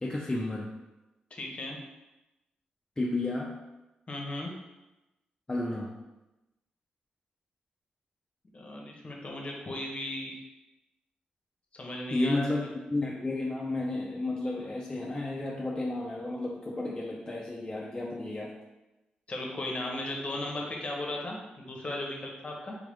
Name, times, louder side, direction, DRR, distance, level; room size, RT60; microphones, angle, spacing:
voice 1, 0.0-0.7 3.0-3.5 5.5-6.0 12.1-18.5, left 2 dB, 20° left, -4 dB, 0.5 m, -32 dB
voice 2, 1.3-1.8 4.1-4.5 8.5-10.3 11.7-12.5 19.3-22.7, left 1 dB, 40° left, -1 dB, 0.8 m, -36 dB
3.5 x 2.4 x 3.5 m, 1.0 s
cardioid pair, 65°, 3 cm